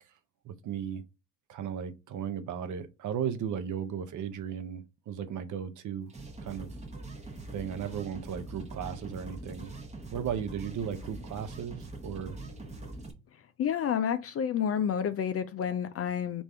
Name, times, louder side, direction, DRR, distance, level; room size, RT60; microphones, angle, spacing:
voice 1, 0.4-1.0 1.5-6.1 6.4-6.7 7.5-9.7 10.1-12.4, right 8 dB, 50° right, 0.7 m, -35 dB
sound 1, 6.1-13.1, right 2 dB, 15° right, 1.0 m, -43 dB
voice 2, 13.6-16.4, left 8 dB, 35° left, 0.4 m, -29 dB
3.3 x 2.6 x 4.3 m
hypercardioid pair, 65°, 41 cm